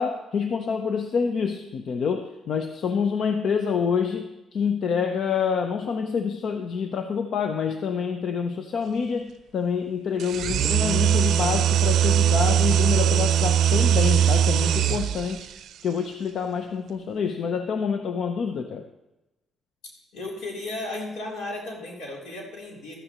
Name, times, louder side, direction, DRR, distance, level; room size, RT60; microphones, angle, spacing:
voice 1, 0.0-15.5 15.8-18.9, left 6 dB, 65° left, 7 dB, 0.7 m, -27 dB
sound 1, 10.2-15.4, right 10 dB, 75° right, 0.5 m, -21 dB
voice 2, 20.1-23.0, left 2 dB, 85° left, -2 dB, 3.5 m, -34 dB
13.5 x 12.0 x 3.0 m, 1.0 s
cardioid pair, 85°, 0 cm